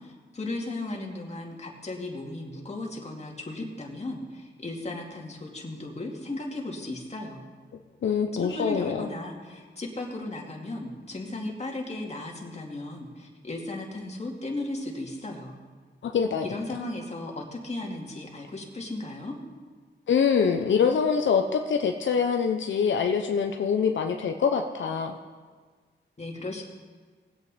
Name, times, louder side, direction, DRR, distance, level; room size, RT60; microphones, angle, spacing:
voice 1, 0.0-7.4 8.3-15.6 16.4-19.4 26.2-26.6, left 2 dB, 35° left, 0 dB, 2.3 m, -36 dB
voice 2, 8.0-9.1 16.0-16.4 20.1-25.2, left 6 dB, 80° left, 4 dB, 0.7 m, -24 dB
19.5 x 8.6 x 4.2 m, 1.5 s
cardioid pair, 75°, 19 cm